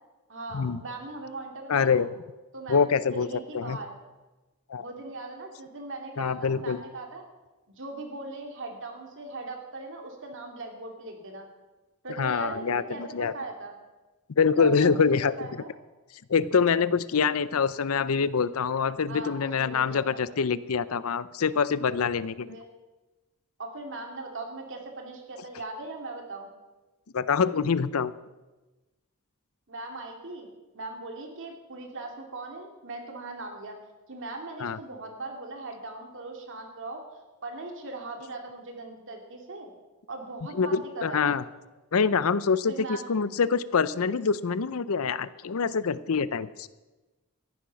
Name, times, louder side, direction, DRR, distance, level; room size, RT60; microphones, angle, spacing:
voice 1, 0.3-2.0 2.5-3.9 4.8-7.2 7.7-11.5 12.0-13.7 14.6-14.9 15.4-15.7 19.1-20.2 22.5-22.7 23.6-26.5 29.7-30.5 30.7-33.8 34.1-37.0 37.4-39.7 40.1-41.4 42.7-43.1, right 2 dB, 60° right, 3 dB, 2.4 m, -39 dB
voice 2, 1.7-2.1 2.7-3.3 3.5-3.8 4.7-4.9 6.2-6.8 12.2-13.3 14.4-15.3 16.3-22.6 27.1-28.1 34.6-34.8 40.5-41.4 41.9-46.7, left 5 dB, 65° left, 17 dB, 0.6 m, -25 dB
14.5 x 10.5 x 5.7 m, 1.2 s
head